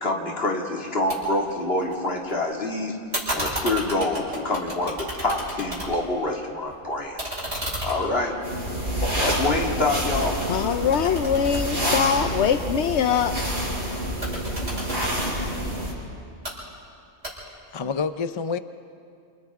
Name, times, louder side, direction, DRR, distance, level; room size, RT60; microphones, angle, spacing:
voice 1, 0.0-3.0 3.3-7.3 7.8-8.4 9.2-10.4, left 2 dB, 60° left, 0 dB, 2.5 m, -26 dB
sound 1, 1.1-1.2 1.5-2.3 3.1-6.2 6.5-9.8 10.2-12.4 14.1-15.3 16.2-16.5 17.2-17.7, equal, 70° right, 6.4 m, -33 dB
sound 2, 8.4-15.9, equal, 45° right, 6.6 m, -28 dB
voice 2, 10.5-13.3, left 8 dB, 80° left, 8 dB, 1.0 m, -23 dB
voice 3, 17.5-18.6, left 5 dB, 35° left, 11 dB, 0.5 m, -28 dB
28.5 x 28.5 x 3.6 m, 2.4 s
omnidirectional pair, 1.2 m